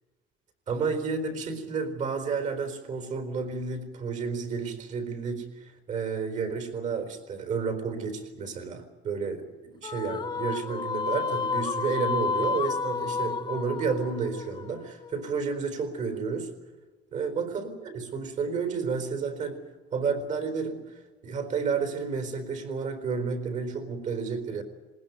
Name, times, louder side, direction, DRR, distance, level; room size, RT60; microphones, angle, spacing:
voice 1, 0.7-16.5 17.1-19.6 19.9-20.8 21.2-24.6, right 5 dB, 40° right, 9 dB, 4.2 m, -31 dB
sound 1, 9.8-15.3, left 5 dB, 25° left, 0.8 m, -31 dB
20.5 x 19.5 x 9.5 m, 1.2 s
cardioid pair, 160°, 19 cm